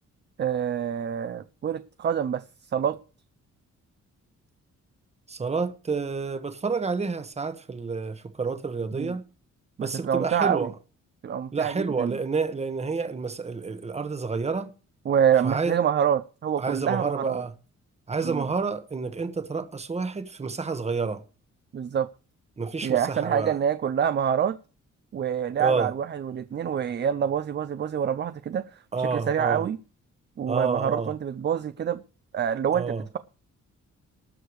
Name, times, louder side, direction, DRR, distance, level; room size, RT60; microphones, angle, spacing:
voice 1, 0.4-2.4 2.7-3.0 8.9-9.1 9.8-10.7 11.2-12.2 15.1-17.4 18.2-18.5 21.7-22.1 22.8-24.6 25.1-29.8 30.4-32.0 32.3-33.2, right 8 dB, 35° right, 0.5 m, -26 dB
voice 2, 5.3-9.2 9.8-10.7 11.5-14.7 15.4-15.7 16.6-17.5 18.1-21.2 22.6-23.5 25.6-25.9 28.9-29.6 30.5-31.1 32.7-33.0, right 4 dB, 20° right, 1.2 m, -29 dB
19.0 x 6.7 x 4.7 m
wide cardioid pair, 170°, 29 cm